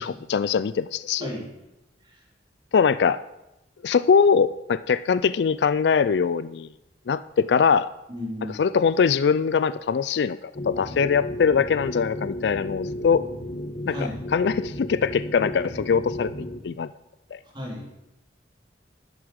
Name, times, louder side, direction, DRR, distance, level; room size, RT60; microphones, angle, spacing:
voice 1, 0.0-1.3 2.7-3.2 3.8-6.7 7.1-7.9 8.6-13.3 13.9-14.0 14.3-16.9 17.3-17.4, left 6 dB, 70° left, 15 dB, 0.4 m, -22 dB
voice 2, 8.1-8.6 13.9-14.1 17.5-17.9, left 1 dB, 25° right, -4 dB, 3.9 m, -33 dB
sound 1, 10.5-16.6, left 1 dB, 50° left, 1.7 m, -34 dB
10.5 x 9.7 x 6.4 m, 0.93 s
head